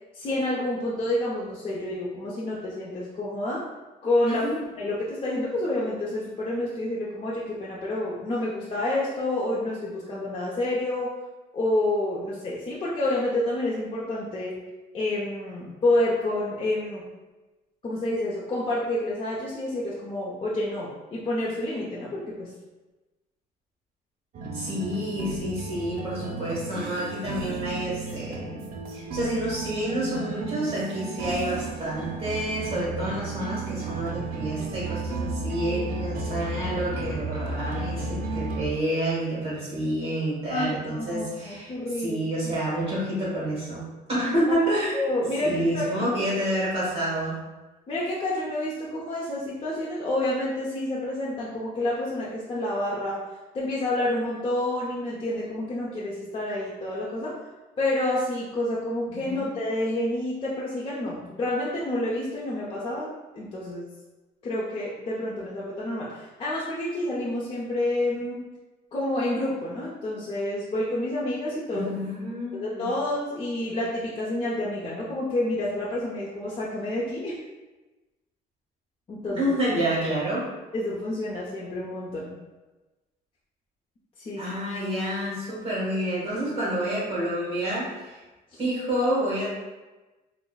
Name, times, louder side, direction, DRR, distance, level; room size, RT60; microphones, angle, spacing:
voice 1, 0.1-3.6 4.0-4.5 4.8-11.1 11.5-14.5 14.9-17.0 17.8-22.5 35.7-35.8 40.5-42.5 44.9-46.1 47.9-53.2 53.5-57.3 57.8-63.9 64.4-68.4 68.9-71.9 72.5-77.4 79.1-79.5 80.7-82.3 84.2-84.5 84.8-84.9 88.5-88.6, left 1 dB, 35° left, -6 dB, 0.6 m, -29 dB
voice 2, 4.2-4.5 24.5-43.8 44.1-44.9 45.4-47.4 59.1-59.5 71.7-72.9 79.4-80.4 84.4-88.2 88.6-89.5, right 1 dB, 35° right, -7 dB, 1.2 m, -28 dB
sound 1, 24.3-38.7, right 3 dB, 55° right, 0.5 m, -33 dB
5.3 x 2.1 x 2.3 m, 1.2 s
cardioid pair, 110°, 17 cm